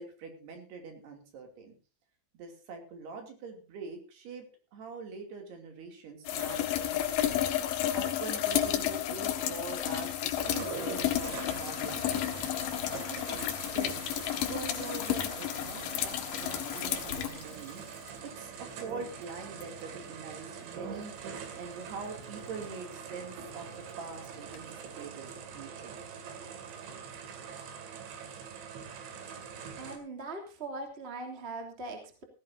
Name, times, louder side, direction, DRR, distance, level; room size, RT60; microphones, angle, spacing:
voice 1, 0.0-1.8 2.3-7.4 7.9-10.1 10.4-12.3 13.1-14.1 14.5-17.8 18.2-23.7 24.0-26.0, right 4 dB, 65° right, 4 dB, 4.7 m, -44 dB
sound 1, 6.3-18.1 19.6-19.7 24.5-24.6, left 11 dB, 85° left, 3.8 m, -32 dB
sound 2, 10.4-30.0, right 6 dB, 85° right, 4.5 m, -44 dB
voice 2, 29.8-32.2, right 2 dB, 15° right, 2 dB, 2.4 m, -40 dB
17.0 x 16.0 x 2.7 m, 0.36 s
omnidirectional pair, 5.1 m